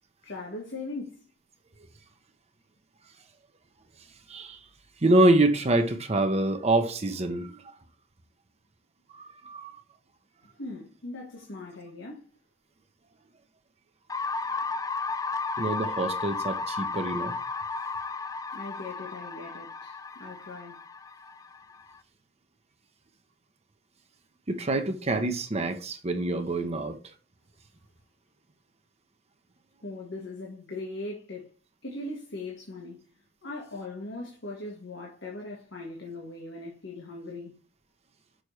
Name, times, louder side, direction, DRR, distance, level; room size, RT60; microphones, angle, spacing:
voice 1, 0.2-1.2 10.6-12.3 18.5-20.8 29.8-31.5 31.8-33.0 33.4-37.5, left 2 dB, 80° left, 1.6 m, -39 dB
voice 2, 4.3-4.6 5.0-7.7 9.1-9.7 15.6-17.4 24.5-27.0, right 2 dB, 35° right, 0.8 m, -26 dB
sound 1, 14.1-22.0, left 4 dB, 20° left, 0.4 m, -34 dB
6.3 x 5.7 x 3.2 m
head